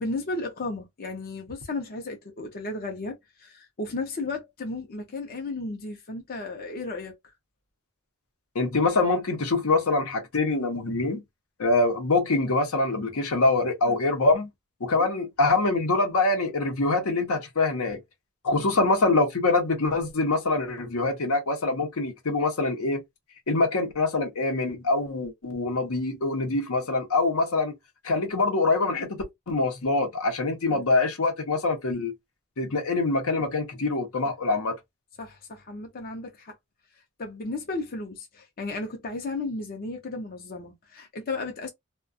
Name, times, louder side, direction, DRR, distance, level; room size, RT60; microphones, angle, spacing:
voice 1, 0.0-7.2 13.9-14.0 15.0-15.1 18.5-18.8 30.7-30.8 35.2-36.6 37.2-41.7, left 2 dB, 45° left, 0.6 m, -34 dB
voice 2, 8.5-11.2 11.6-14.5 14.8-18.0 18.4-23.0 23.5-27.7 28.0-32.1 32.6-34.8, left 3 dB, 80° left, 0.8 m, -24 dB
2.3 x 2.2 x 2.5 m
head